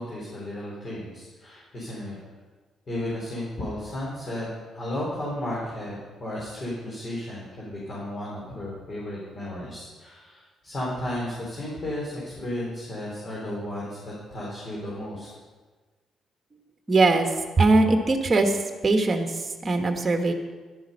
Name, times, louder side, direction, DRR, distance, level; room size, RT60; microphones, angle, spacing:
voice 1, 0.0-2.2 2.9-4.5 4.7-15.3, left 1 dB, 40° left, -5 dB, 4.1 m, -34 dB
voice 2, 16.9-17.3 17.6-20.3, right 3 dB, 30° right, 5 dB, 1.4 m, -21 dB
11.5 x 10.5 x 5.5 m, 1.4 s
cardioid pair, 90°, 0 cm